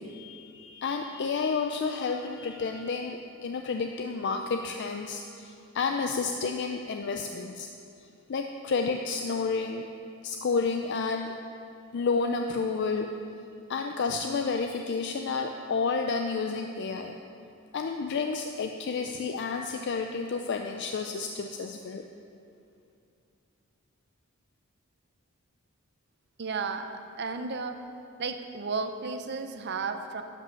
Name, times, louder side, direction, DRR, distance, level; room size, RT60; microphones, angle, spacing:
voice 1, 0.0-7.7 8.3-9.8 10.2-11.3 11.9-13.1 13.7-17.2 17.7-22.0, left 4 dB, 55° left, 4 dB, 0.4 m, -30 dB
voice 2, 26.4-26.9 27.2-27.8 28.2-30.2, right 4 dB, 50° right, 8 dB, 0.6 m, -33 dB
11.0 x 5.4 x 6.2 m, 2.5 s
head